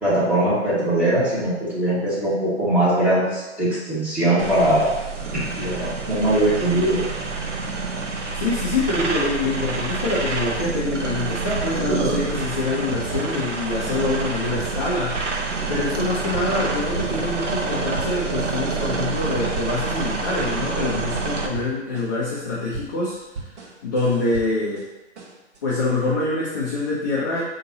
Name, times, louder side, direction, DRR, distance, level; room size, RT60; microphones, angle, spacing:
voice 1, 0.0-4.9 5.3-7.0, right 1 dB, 5° right, -11 dB, 1.4 m, -21 dB
sound 1, 4.4-21.5, right 4 dB, 85° right, 0.7 m, -27 dB
voice 2, 8.3-15.3 15.7-23.2 23.8-24.8 25.6-27.4, left 2 dB, 15° left, -7 dB, 0.3 m, -25 dB
sound 2, 11.5-12.0 12.3-13.6 13.9-17.7 17.9-18.5 18.8-20.1 20.4-24.9 25.2-25.6, right 4 dB, 70° right, 1.1 m, -38 dB
5.1 x 2.8 x 2.7 m, 1.1 s
hypercardioid pair, 130°, 36 cm